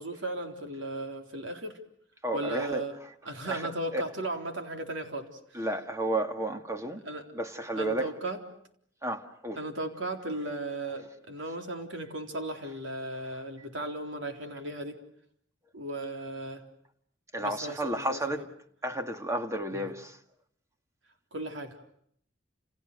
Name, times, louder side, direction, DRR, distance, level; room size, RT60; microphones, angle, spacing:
voice 1, 0.0-1.7 2.3-3.0 3.3-5.7 7.0-7.2 7.7-8.4 9.6-15.0 15.7-16.6 17.4-18.2 19.7-19.9 21.3-21.8, right 1 dB, 80° right, 3.9 m, -36 dB
voice 2, 2.2-2.8 3.4-4.0 5.5-7.0 7.3-8.1 9.0-9.6 17.3-18.4 18.8-20.2, right 1 dB, 15° right, 2.0 m, -32 dB
29.5 x 29.0 x 6.7 m
head